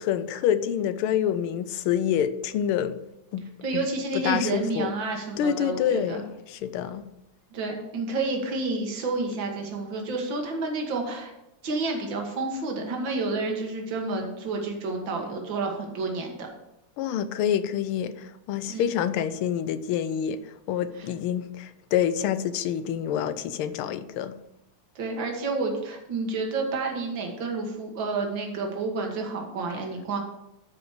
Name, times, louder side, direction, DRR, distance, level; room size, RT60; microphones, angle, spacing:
voice 1, 0.0-3.0 3.3-3.5 3.7-3.8 4.1-4.9 5.4-7.0 17.0-20.4 20.7-24.3, left 9 dB, 85° left, 12 dB, 1.5 m, -27 dB
voice 2, 3.6-6.2 7.5-11.3 11.6-16.5 18.7-18.9 21.0-21.1 25.0-30.2, right 3 dB, 65° right, 2 dB, 2.2 m, -30 dB
13.0 x 5.0 x 5.0 m, 0.89 s
omnidirectional pair, 2.3 m